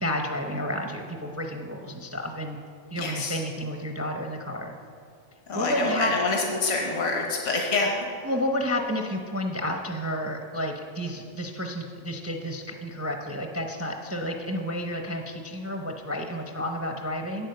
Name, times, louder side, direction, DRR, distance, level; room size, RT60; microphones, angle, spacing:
voice 1, 0.0-2.6 2.9-4.7 5.5-6.1 8.2-17.5, equal, 15° right, 3 dB, 0.5 m, -31 dB
voice 2, 3.0-3.4 5.5-8.0, left 3 dB, 65° left, 0 dB, 1.6 m, -26 dB
9.0 x 8.8 x 6.7 m, 2.3 s
omnidirectional pair, 1.4 m